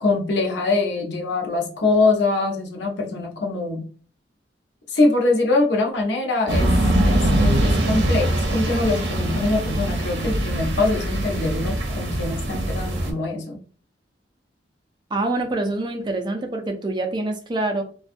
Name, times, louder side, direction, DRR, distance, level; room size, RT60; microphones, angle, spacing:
voice 1, 0.0-3.9 4.9-6.7 7.0-13.6, left 3 dB, 75° left, 1 dB, 0.6 m, -23 dB
sound 1, 6.5-13.1, right 1 dB, 75° right, 0.6 m, -22 dB
voice 2, 15.1-17.8, right 2 dB, 25° right, 4 dB, 0.4 m, -25 dB
2.5 x 2.3 x 2.5 m, 0.42 s
head